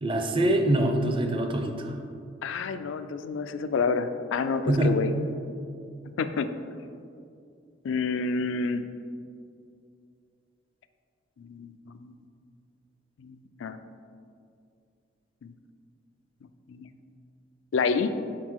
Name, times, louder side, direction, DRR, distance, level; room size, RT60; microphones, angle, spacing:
voice 1, 0.0-1.9 4.7-5.0, right 1 dB, 25° right, 4 dB, 0.5 m, -24 dB
voice 2, 2.4-5.1 6.2-6.5 7.8-8.8 11.4-12.1 13.2-13.8 15.4-15.5 16.7-16.9 17.7-18.1, left 4 dB, 75° left, 10 dB, 0.4 m, -29 dB
5.9 x 4.3 x 4.6 m, 2.4 s
head